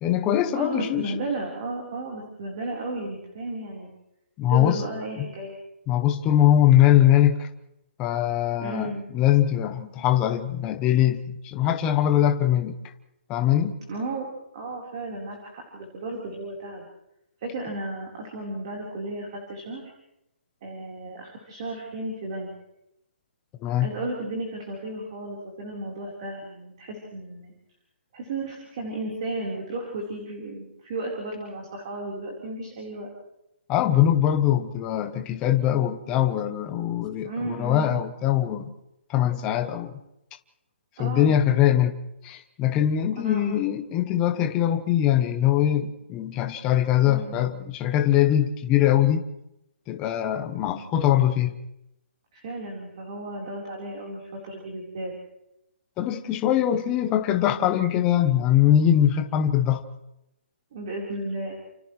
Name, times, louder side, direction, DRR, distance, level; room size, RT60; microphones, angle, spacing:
voice 1, 0.0-1.1 4.4-4.8 5.2-5.3 5.9-7.5 8.0-12.7 13.3-13.7 23.6-23.9 33.7-38.7 39.1-39.9 41.0-41.9 42.2-49.2 49.9-51.6 56.0-59.8, left 11 dB, 10° left, 6 dB, 0.8 m, -22 dB
voice 2, 0.5-3.9 4.5-5.5 8.6-9.0 13.9-16.9 17.4-19.9 20.6-22.5 23.8-27.5 28.1-33.1 37.2-37.9 41.0-41.4 43.2-43.4 47.0-47.4 52.3-55.1 60.7-61.6, right 2 dB, 25° right, -1 dB, 4.0 m, -34 dB
29.5 x 28.0 x 3.2 m, 0.85 s
hypercardioid pair, 175°, 7 cm